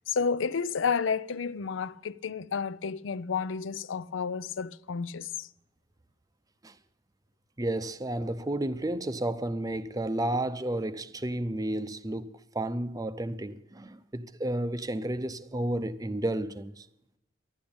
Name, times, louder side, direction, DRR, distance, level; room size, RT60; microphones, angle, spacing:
voice 1, 0.1-5.5, left 5 dB, 85° left, 0.5 m, -31 dB
voice 2, 7.6-16.9, right 1 dB, 20° right, 0.6 m, -32 dB
12.0 x 10.5 x 8.7 m
head